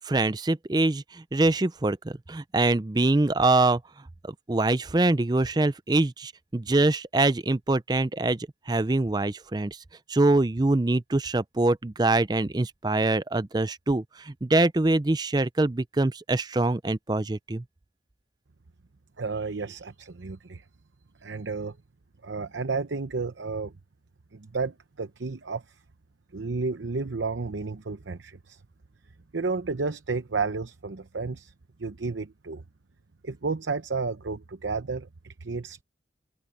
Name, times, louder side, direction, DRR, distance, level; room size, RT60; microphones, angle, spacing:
voice 1, 0.0-3.8 4.2-9.8 10.1-17.6, right 2 dB, 20° right, 0.5 m, -24 dB
voice 2, 19.2-20.6 21.2-21.8 22.2-23.7 24.3-25.6 26.3-28.6 29.3-31.5 31.8-32.6 33.2-35.8, right 4 dB, 90° right, 0.8 m, -32 dB
head